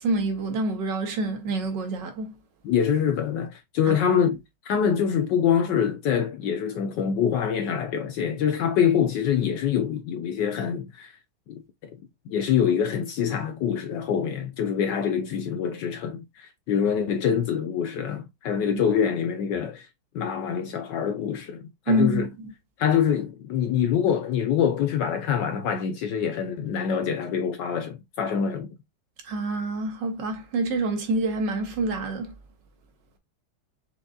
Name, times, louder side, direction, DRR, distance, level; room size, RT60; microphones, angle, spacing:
voice 1, 0.0-2.3 3.9-4.0 21.9-22.3 29.3-32.3, right 2 dB, 65° right, 1.3 m, -26 dB
voice 2, 2.6-4.4 4.6-11.1 11.5-11.9 12.3-19.9 20.1-22.3 22.8-28.7, left 8 dB, 70° left, 1.1 m, -25 dB
5.3 x 3.6 x 2.2 m
omnidirectional pair, 2.3 m